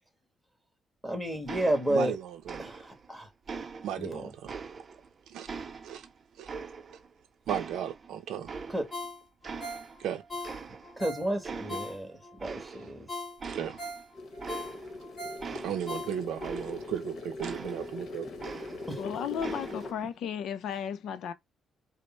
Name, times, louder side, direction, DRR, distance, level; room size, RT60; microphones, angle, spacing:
voice 1, 1.0-2.2 2.6-3.3 4.0-4.3 8.7-8.9 11.0-13.1 18.9-19.0, right 1 dB, ahead, 1.7 m, -31 dB
sound 1, 1.5-2.2 2.5-3.1 3.5-5.1 5.5-7.1 7.5-9.1 9.4-10.1 10.4-11.1 11.4-12.0 12.4-13.0 13.4-17.0 17.4-19.0 19.4-20.0, right 5 dB, 40° right, 0.6 m, -42 dB
voice 2, 1.9-2.6 3.8-4.6 5.3-5.5 5.8-6.0 6.4-6.5 7.5-8.5 10.0-10.2 13.4-13.8 15.6-18.3, right 10 dB, 80° right, 0.5 m, -35 dB
Ringtone, 8.9-12.4 12.8-12.9 13.1-16.5 16.9-17.0, left 1 dB, 25° left, 2.5 m, -40 dB
sound 2, 14.1-19.9, left 2 dB, 55° left, 1.0 m, -41 dB
voice 3, 19.0-21.3, left 8 dB, 75° left, 0.5 m, -34 dB
5.1 x 2.1 x 4.4 m
cardioid pair, 90°, 0 cm